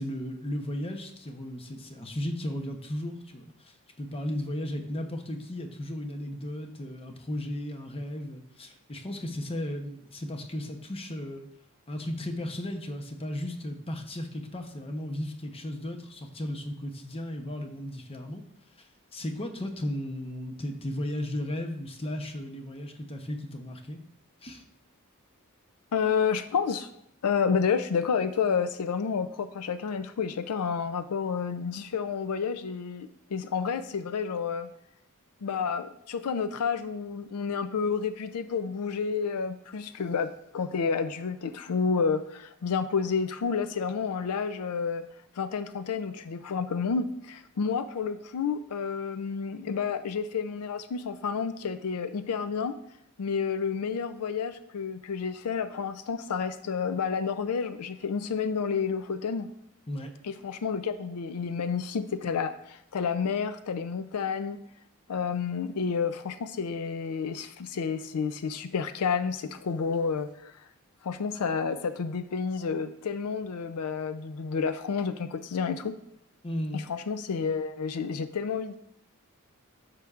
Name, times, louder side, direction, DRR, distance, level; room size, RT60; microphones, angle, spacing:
voice 1, 0.0-11.5 11.9-18.4 18.8-24.0 24.4-24.6 59.9-60.1 76.4-76.8, left 1 dB, 25° left, 5 dB, 0.8 m, -35 dB
voice 2, 25.9-26.9 27.2-34.7 35.4-45.1 45.3-52.8 53.2-59.5 60.2-64.6 65.1-70.5 71.0-76.0 76.7-78.8, left 6 dB, 85° left, 11 dB, 0.4 m, -30 dB
10.0 x 6.6 x 2.4 m, 0.76 s
head